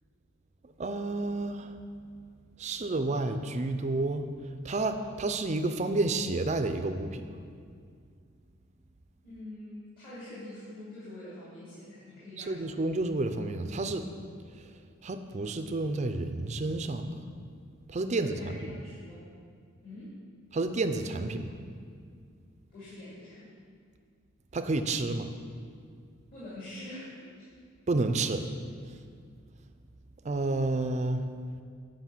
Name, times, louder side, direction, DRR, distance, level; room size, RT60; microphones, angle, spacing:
voice 1, 0.8-1.7 2.6-4.3 4.6-7.3 12.4-14.1 15.0-17.1 17.9-18.8 20.5-21.5 24.5-25.3 27.9-28.4 30.2-31.2, right 2 dB, 35° right, 8 dB, 0.4 m, -30 dB
voice 2, 9.2-12.8 18.1-19.3 19.8-20.1 22.7-23.5 26.3-27.5, left 1 dB, 45° left, -11 dB, 2.5 m, -45 dB
8.2 x 5.3 x 7.2 m, 2.2 s
head